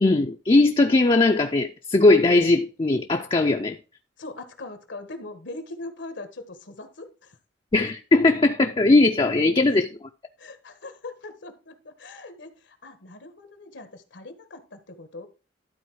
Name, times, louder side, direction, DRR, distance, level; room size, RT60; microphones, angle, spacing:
voice 1, 0.0-3.8 7.7-9.9, left 2 dB, 30° left, 0.5 m, -19 dB
voice 2, 4.2-7.4 10.4-15.3, left 2 dB, 80° left, 1.4 m, -41 dB
12.0 x 4.2 x 4.6 m
head